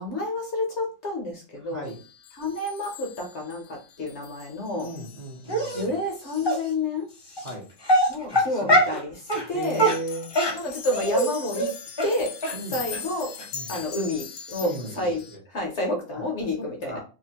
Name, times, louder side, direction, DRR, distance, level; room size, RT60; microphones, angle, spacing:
voice 1, 0.0-1.9 2.3-4.9 5.7-7.1 8.1-9.9 10.5-11.7 12.0-12.3 12.7-13.3 13.7-15.2 15.5-17.0, left 2 dB, 60° left, 1 dB, 0.8 m, -29 dB
voice 2, 1.6-2.0 4.8-5.9 7.4-7.6 8.3-8.8 9.5-10.3 12.5-12.8 13.5-13.7 14.6-15.4 16.6-17.0, right 1 dB, 40° right, -3 dB, 0.6 m, -36 dB
sound 1, 1.8-6.7 7.1-7.2 7.7-7.8 9.5-15.4, left 7 dB, 75° left, 1.1 m, -41 dB
Dog, 5.5-5.8 6.4-6.6 7.4-7.5 7.8-9.0 9.3-9.5 9.8-11.3 11.6-11.7 12.0-12.1 12.4-12.5 12.9-13.0 13.4-13.5 13.7-13.8, right 1 dB, 25° left, 0.6 m, -22 dB
2.8 x 2.5 x 2.8 m, 0.34 s
omnidirectional pair, 1.6 m